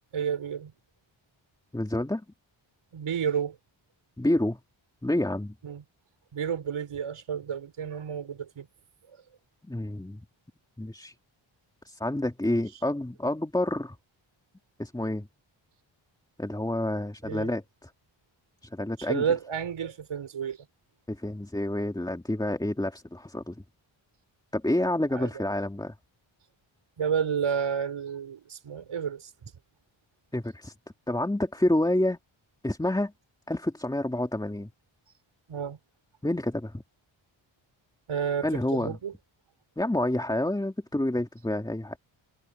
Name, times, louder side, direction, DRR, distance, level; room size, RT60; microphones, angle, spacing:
voice 1, 0.1-0.7 2.9-3.6 5.6-5.8 6.3-8.7 17.2-17.5 19.0-20.6 25.1-25.5 27.0-29.3 35.5-35.8 38.1-39.1, right 7 dB, 80° right, 5.7 m, -31 dB
voice 2, 1.7-2.2 4.2-4.6 5.0-5.5 9.6-10.2 10.8-11.1 11.8-14.0 14.8-15.3 16.4-17.9 18.7-19.3 21.1-23.6 24.5-25.9 30.3-30.7 31.1-32.2 32.6-33.1 33.5-34.7 36.2-36.8 38.4-39.0 39.8-42.0, left 1 dB, 10° left, 2.6 m, -28 dB
wide cardioid pair, 160°, 48 cm